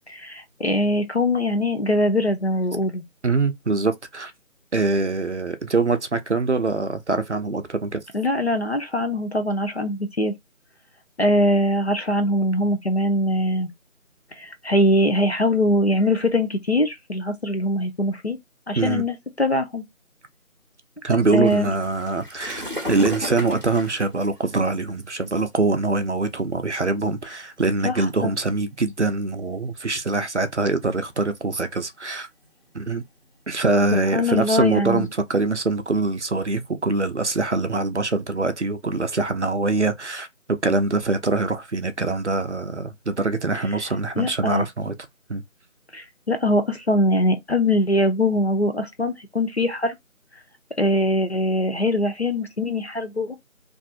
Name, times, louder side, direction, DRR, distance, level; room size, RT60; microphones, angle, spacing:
voice 1, 0.1-3.0 8.1-10.3 11.2-13.7 14.4-18.4 18.7-19.8 21.3-21.7 27.8-28.3 34.1-35.1 44.2-44.6 45.9-50.0 50.8-53.4, left 1 dB, 50° left, 0.5 m, -22 dB
voice 2, 3.2-4.3 4.7-8.0 18.8-19.0 21.0-32.3 32.7-33.0 33.5-44.9 45.3-45.4, right 3 dB, 55° right, 0.5 m, -24 dB
sound 1, 21.4-24.9 25.7-25.9 26.6-26.7 27.0-27.2 27.8-28.3 29.2-30.3 30.7-31.2 31.7-32.0 32.4-35.1, left 1 dB, 40° right, 0.9 m, -35 dB
2.5 x 2.5 x 2.4 m
figure-of-eight pair, 180°, 41 cm